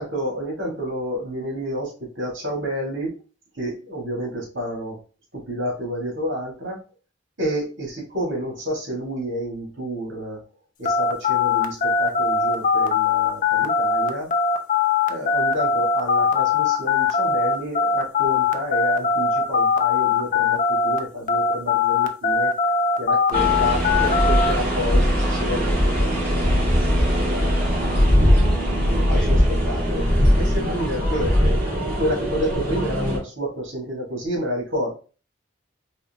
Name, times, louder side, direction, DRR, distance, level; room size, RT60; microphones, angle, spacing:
voice 1, 0.0-3.1 3.5-5.0 5.3-6.8 7.4-10.4 10.8-14.3 15.1-22.5 23.0-26.7 27.1-28.1 28.6-34.9, equal, 80° right, -1 dB, 1.7 m, -30 dB
sound 1, 10.8-21.0 21.3-24.5, left 5 dB, 40° left, 0.4 m, -20 dB
sound 2, 23.3-33.2, equal, 50° right, 2.1 m, -20 dB
4.2 x 2.9 x 2.8 m, 0.36 s
head